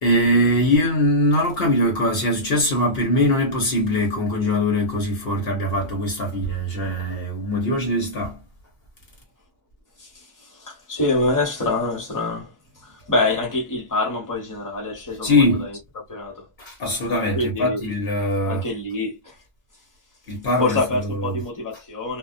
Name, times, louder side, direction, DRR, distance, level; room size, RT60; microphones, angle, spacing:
voice 1, 0.0-8.4 15.2-15.7 16.6-18.6 20.3-21.4, left 1 dB, 70° left, 1.1 m, -22 dB
voice 2, 10.5-12.5 12.8-15.7 16.1-16.5 17.3-17.8 18.5-19.3 20.6-22.2, left 2 dB, 20° left, 1.0 m, -25 dB
2.2 x 2.2 x 2.5 m
omnidirectional pair, 1.1 m